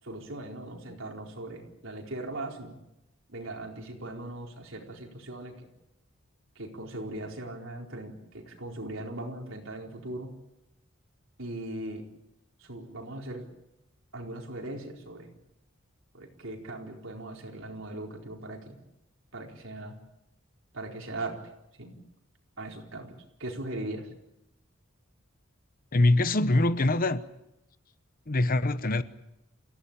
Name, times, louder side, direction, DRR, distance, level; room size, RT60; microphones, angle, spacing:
voice 1, 0.0-2.8 3.3-5.7 6.5-10.3 11.4-12.0 12.6-13.5 14.1-15.3 16.1-18.8 19.3-19.9 20.7-21.4 21.8-22.0 22.6-24.1, right 1 dB, 65° right, 4.5 m, -39 dB
voice 2, 25.9-27.2 28.3-29.0, left 2 dB, 45° left, 0.9 m, -23 dB
28.5 x 16.5 x 8.8 m
head